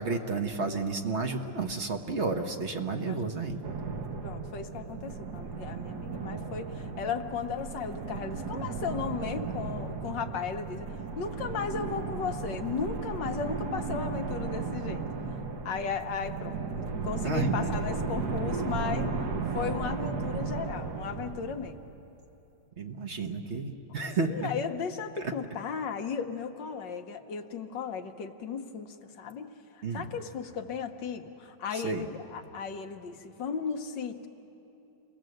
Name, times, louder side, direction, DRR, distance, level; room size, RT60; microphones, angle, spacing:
voice 1, 0.0-3.7 17.2-17.7 22.8-24.5 25.2-25.3 29.8-30.1 31.7-32.0, right 3 dB, 40° right, 5 dB, 1.2 m, -31 dB
sound 1, 3.6-22.1, right 4 dB, 60° right, 1.5 m, -35 dB
voice 2, 4.2-15.0 15.6-19.2 19.5-21.8 24.3-34.3, left 6 dB, 75° left, 6 dB, 1.7 m, -36 dB
28.0 x 19.5 x 7.8 m, 3.0 s
omnidirectional pair, 2.0 m